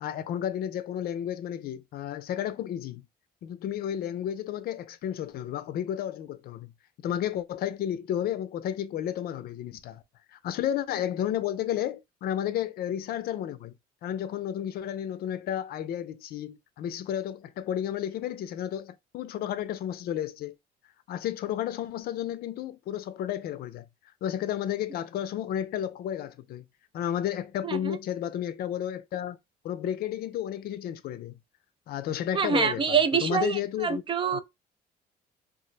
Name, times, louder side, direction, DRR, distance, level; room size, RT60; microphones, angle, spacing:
voice 1, 0.0-3.0 3.4-6.7 7.0-10.0 10.3-13.7 14.0-20.6 21.1-23.9 24.2-26.6 26.9-29.4 29.6-31.4 31.9-34.0 34.3-34.4, left 10 dB, 65° left, 0.5 m, -32 dB
voice 2, 32.3-34.4, right 6 dB, 30° right, 0.4 m, -25 dB
2.5 x 2.0 x 3.8 m
cardioid pair, 110°, 17 cm